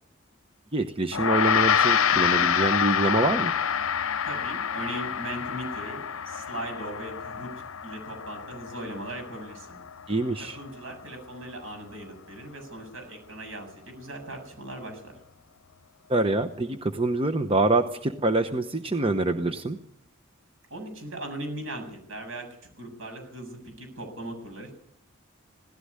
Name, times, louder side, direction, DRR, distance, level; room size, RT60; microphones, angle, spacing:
voice 1, 0.7-3.5 10.1-10.6 16.1-19.8, right 2 dB, 25° right, 8 dB, 0.9 m, -25 dB
Gong, 1.1-10.7, left 7 dB, 80° left, 0.7 m, -27 dB
voice 2, 4.2-7.5 7.8-9.8 10.5-15.2 20.7-22.5 22.8-24.7, right 1 dB, 80° right, 5 dB, 7.6 m, -38 dB
17.5 x 15.0 x 9.7 m, 0.72 s
head